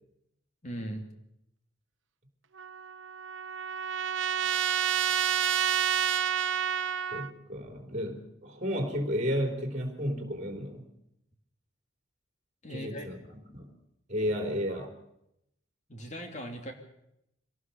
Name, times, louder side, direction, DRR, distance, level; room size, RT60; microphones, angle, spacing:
voice 1, 0.6-1.1 12.6-13.1 14.7-14.9 15.9-16.7, equal, 35° left, 4 dB, 2.9 m, -39 dB
Trumpet, 2.6-7.3, right 8 dB, 75° right, 0.9 m, -29 dB
voice 2, 7.1-10.9 12.7-13.7 14.1-14.9, equal, 35° right, 4 dB, 3.7 m, -33 dB
24.0 x 18.0 x 7.0 m, 0.81 s
head